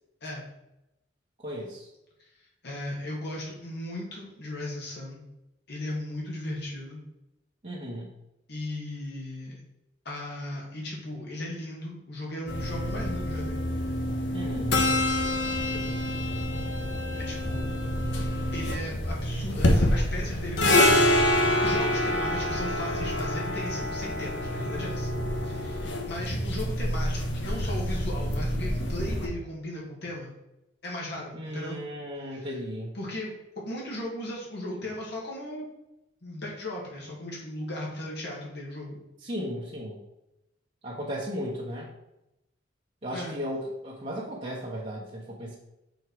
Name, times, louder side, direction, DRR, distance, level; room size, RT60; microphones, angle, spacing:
voice 1, 1.4-1.9 7.6-8.1 14.3-14.8 31.3-33.0 39.2-40.0 40.8-41.9 43.0-45.5, equal, 40° right, -6 dB, 1.2 m, -35 dB
voice 2, 2.6-5.2 5.7-7.0 8.5-9.6 10.1-13.6 15.6-16.0 17.1-17.7 18.5-25.1 25.4-30.3 30.8-31.8 32.3-32.5 32.9-33.3 33.6-35.7 36.2-39.0 43.1-43.3, left 1 dB, 65° left, -3 dB, 2.0 m, -37 dB
sound 1, 12.5-29.3, left 1 dB, 80° left, 1.1 m, -27 dB
6.6 x 4.6 x 4.7 m, 0.90 s
head